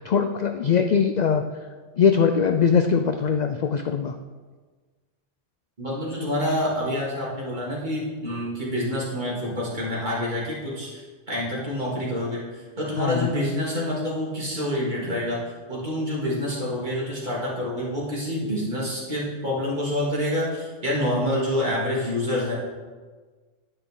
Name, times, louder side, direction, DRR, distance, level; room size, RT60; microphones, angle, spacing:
voice 1, 0.0-1.4 2.0-4.1 13.0-13.3, left 6 dB, 70° left, 6 dB, 0.4 m, -21 dB
voice 2, 5.8-11.0 11.3-12.4 12.8-15.4 15.7-22.6, left 1 dB, 35° right, -6 dB, 3.0 m, -27 dB
9.7 x 9.5 x 3.8 m, 1.4 s
omnidirectional pair, 1.3 m